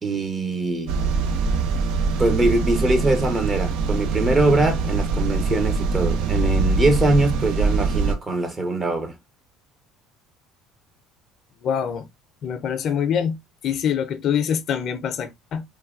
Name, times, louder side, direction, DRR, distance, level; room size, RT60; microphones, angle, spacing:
voice 1, 0.0-0.9 2.2-9.1, right 2 dB, 25° right, 0.8 m, -22 dB
sound 1, 0.9-8.1, right 4 dB, 75° right, 0.4 m, -23 dB
voice 2, 11.6-12.1 12.4-13.4 13.6-15.6, left 8 dB, 55° left, 0.5 m, -24 dB
3.1 x 2.2 x 2.4 m
supercardioid pair, 95°, 0 cm